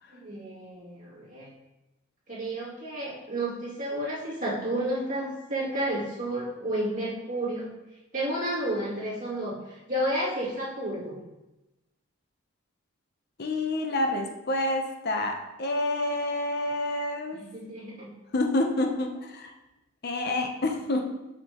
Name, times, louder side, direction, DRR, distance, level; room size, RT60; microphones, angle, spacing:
voice 1, 0.1-1.5 2.3-7.7 8.1-9.6 9.9-11.2 17.3-18.1, right 1 dB, 40° right, -7 dB, 2.4 m, -31 dB
voice 2, 13.4-17.4 18.3-19.5 20.0-21.1, left 2 dB, 50° left, 4 dB, 0.7 m, -28 dB
6.6 x 6.4 x 3.0 m, 0.99 s
head